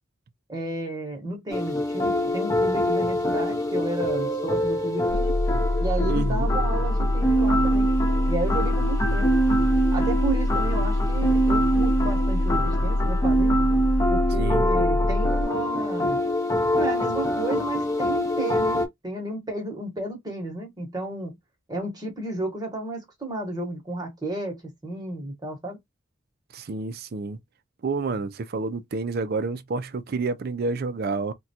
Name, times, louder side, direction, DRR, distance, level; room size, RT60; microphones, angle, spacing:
voice 1, 0.5-5.3 5.8-7.9 8.3-9.3 9.9-13.6 14.1-16.2 16.7-21.4 21.7-25.8, right 2 dB, 20° right, 1.0 m, -32 dB
sound 1, 1.5-18.9, equal, 15° left, 0.7 m, -25 dB
sound 2, 5.1-15.4, left 1 dB, 65° left, 0.6 m, -24 dB
voice 2, 6.1-6.5 14.4-14.7 26.5-27.4 27.8-31.3, right 3 dB, 50° right, 0.4 m, -29 dB
3.6 x 2.2 x 2.7 m
head